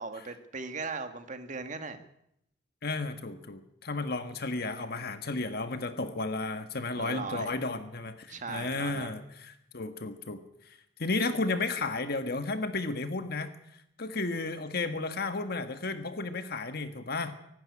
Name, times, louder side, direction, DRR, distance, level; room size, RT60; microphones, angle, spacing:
voice 1, 0.0-2.1 7.0-7.5 8.3-9.1, right 4 dB, 45° right, 7 dB, 1.9 m, -38 dB
voice 2, 2.8-13.5 14.0-17.3, left 3 dB, 60° left, 8 dB, 1.6 m, -33 dB
24.5 x 11.5 x 9.9 m, 0.77 s
head